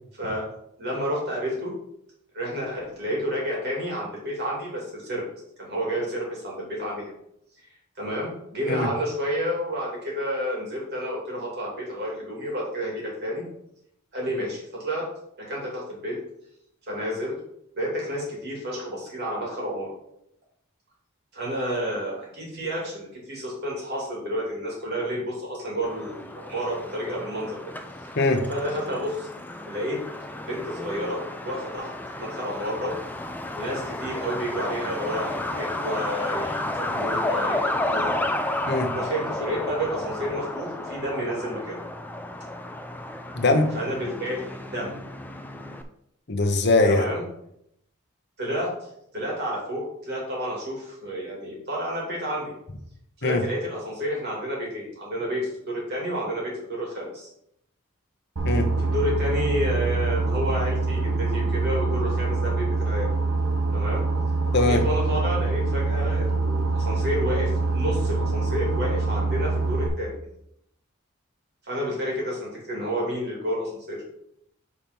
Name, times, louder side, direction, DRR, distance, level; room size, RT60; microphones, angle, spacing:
voice 1, 0.2-0.5 0.8-1.7 2.3-5.2 5.6-7.1 8.0-13.4 14.1-15.1 15.4-16.2 16.9-17.3 17.7-19.9 21.3-27.7 28.0-28.1 28.5-29.3 29.7-30.0 30.4-31.9 32.2-33.0 33.5-38.2 38.9-41.8 43.7-45.0 46.8-47.2 48.4-48.8 49.1-52.5 53.2-57.3 58.8-63.1 63.7-64.0 64.7-70.1 71.6-74.0, equal, 50° right, -3 dB, 2.8 m, -30 dB
Truck, 25.8-45.8, left 1 dB, 10° left, 0.4 m, -32 dB
voice 2, 28.1-28.5 38.7-38.9 43.3-43.7 46.3-47.1 53.2-53.4 58.4-58.7 64.5-64.8, left 2 dB, 55° left, 4 dB, 0.9 m, -21 dB
Boat Water vehicle, 58.4-69.9, right 3 dB, 90° right, 1.1 m, -25 dB
5.9 x 4.4 x 5.4 m, 0.75 s
head